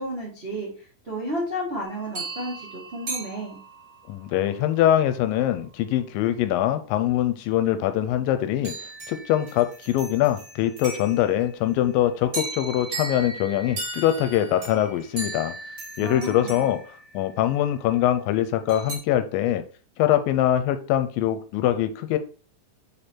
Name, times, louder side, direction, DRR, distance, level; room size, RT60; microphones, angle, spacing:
voice 1, 0.0-3.6 16.0-16.7, equal, 70° right, -4 dB, 0.5 m, -32 dB
sound 1, 1.8-4.0 8.6-11.5 12.3-17.7 18.7-19.0, right 3 dB, 40° right, 1.7 m, -37 dB
voice 2, 4.1-8.7 9.1-15.5 16.0-16.8 17.1-19.6 20.0-22.2, left 12 dB, 80° left, 10 dB, 2.2 m, -23 dB
5.1 x 4.7 x 4.3 m, 0.39 s
omnidirectional pair, 4.2 m